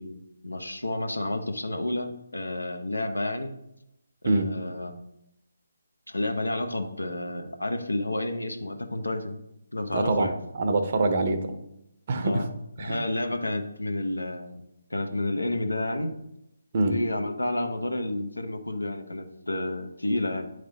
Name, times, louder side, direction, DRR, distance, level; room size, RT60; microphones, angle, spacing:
voice 1, 0.0-3.5 4.2-5.0 6.1-9.4 9.7-10.4 12.2-12.5 12.8-14.6 14.9-16.1 16.9-20.5, left 1 dB, 85° left, 5 dB, 0.9 m, -30 dB
voice 2, 9.9-11.5 12.1-12.4 12.8-13.0 16.7-17.0, right 2 dB, 45° right, 6 dB, 0.8 m, -25 dB
9.1 x 3.3 x 4.0 m, 0.84 s
figure-of-eight pair, 150°, 0 cm